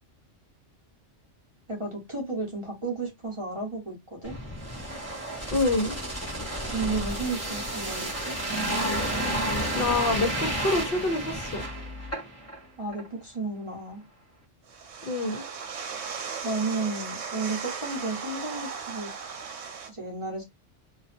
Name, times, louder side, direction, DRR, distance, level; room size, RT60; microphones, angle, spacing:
voice 1, 1.7-4.4 6.7-8.4 12.8-14.0 16.4-19.1 19.9-20.4, right 3 dB, 30° right, 0.7 m, -33 dB
sound 1, 4.2-12.6 12.9-13.1, right 1 dB, 15° left, 0.6 m, -31 dB
voice 2, 5.5-6.0 9.7-11.6 15.0-15.4, left 2 dB, 60° left, 0.7 m, -26 dB
Sea-Waves windfilter, 14.7-19.9, right 6 dB, 70° right, 1.0 m, -37 dB
2.6 x 2.2 x 2.4 m
omnidirectional pair, 1.2 m